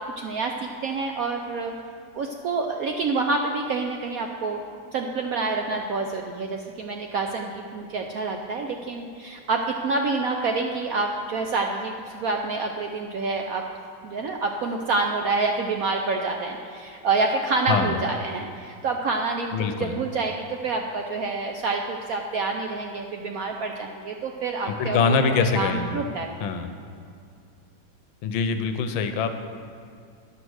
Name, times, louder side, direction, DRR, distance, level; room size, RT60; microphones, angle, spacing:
voice 1, 0.2-0.5 0.8-1.7 2.1-4.6 4.9-13.6 14.0-26.5, right 3 dB, 70° right, 3 dB, 0.8 m, -27 dB
voice 2, 19.5-19.9 24.7-26.0 26.4-26.7 28.2-29.3, left 5 dB, 85° left, 8 dB, 1.5 m, -24 dB
10.0 x 7.0 x 6.3 m, 2.3 s
omnidirectional pair, 2.1 m